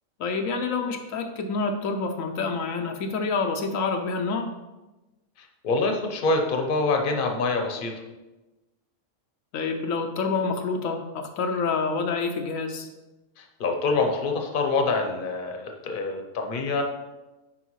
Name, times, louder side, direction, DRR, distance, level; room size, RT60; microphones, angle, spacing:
voice 1, 0.2-4.5 9.5-12.9, left 4 dB, 80° left, 4 dB, 1.1 m, -27 dB
voice 2, 5.4-7.9 13.6-16.8, left 3 dB, 45° left, 3 dB, 0.9 m, -25 dB
9.9 x 4.5 x 3.1 m, 1.1 s
omnidirectional pair, 1.4 m